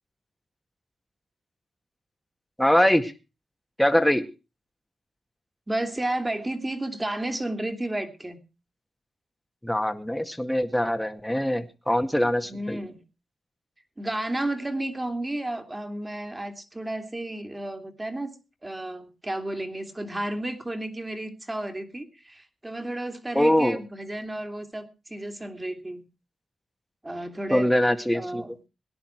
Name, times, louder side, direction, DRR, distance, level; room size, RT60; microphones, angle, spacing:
voice 1, 2.6-3.1 3.8-4.2 9.6-12.8 23.4-23.8 27.5-28.7, equal, 5° left, 7 dB, 2.0 m, -23 dB
voice 2, 5.7-8.4 12.4-13.0 14.0-18.3 18.6-26.0 27.0-27.8 28.1-28.5, right 1 dB, 20° right, 7 dB, 3.2 m, -32 dB
18.5 x 10.5 x 4.7 m, 0.31 s
cardioid pair, 55°, 0 cm